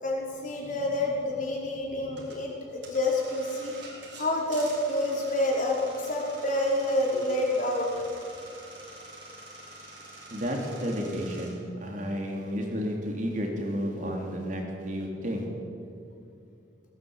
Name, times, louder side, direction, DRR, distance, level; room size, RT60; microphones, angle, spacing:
voice 1, 0.0-3.7 4.1-8.1, left 1 dB, 45° left, -2 dB, 5.0 m, -28 dB
sound 1, 2.2-11.5, right 3 dB, 80° right, 5.5 m, -47 dB
voice 2, 10.3-15.5, equal, 45° right, 0 dB, 3.5 m, -32 dB
19.0 x 17.0 x 8.9 m, 2.6 s
head